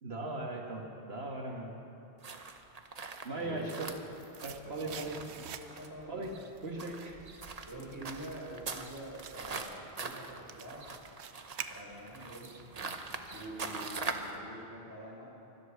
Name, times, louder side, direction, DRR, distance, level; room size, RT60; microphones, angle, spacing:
voice 1, 0.0-1.8 3.2-3.9 4.4-5.2 6.1-6.4 6.6-7.2, right 2 dB, 70° right, 1 dB, 2.0 m, -38 dB
sound 1, 2.2-14.4, right 4 dB, 40° right, 0.9 m, -43 dB
voice 2, 3.3-3.9 4.6-5.0 5.6-6.3 7.7-10.9 11.7-12.9 13.3-15.3, right 1 dB, 20° right, -5 dB, 4.3 m, -46 dB
sound 2, 4.1-6.0 6.4-12.3 12.6-12.7, right 8 dB, 90° right, 1.0 m, -48 dB
24.0 x 8.0 x 7.2 m, 3.0 s
omnidirectional pair, 1.1 m